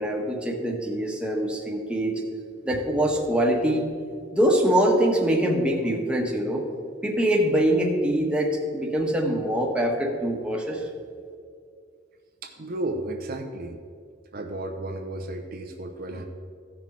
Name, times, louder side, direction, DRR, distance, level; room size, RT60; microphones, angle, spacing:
voice 1, 0.0-2.2 2.6-3.9 4.3-6.6 7.0-10.9, right 1 dB, 5° right, 0 dB, 1.2 m, -24 dB
voice 2, 6.1-6.4 9.0-9.2 12.4-13.8 14.3-16.2, right 1 dB, 50° right, 4 dB, 0.7 m, -34 dB
15.0 x 6.1 x 4.3 m, 2.2 s
head